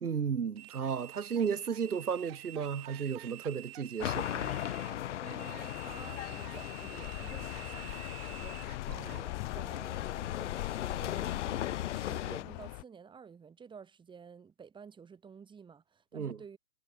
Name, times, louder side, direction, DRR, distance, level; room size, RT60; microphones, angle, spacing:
voice 1, 0.0-4.5 8.9-9.1 16.1-16.4, right 6 dB, 85° right, 1.7 m, -34 dB
sound 1, 0.6-9.2, right 16 dB, 40° right, 2.5 m, -50 dB
sound 2, 4.0-12.4, left 12 dB, 55° left, 1.0 m, -38 dB
voice 2, 5.2-16.6, right 6 dB, 10° right, 4.1 m, -52 dB
sound 3, 5.7-12.8, left 29 dB, 35° left, 4.1 m, -42 dB
hypercardioid pair, 135°, 44 cm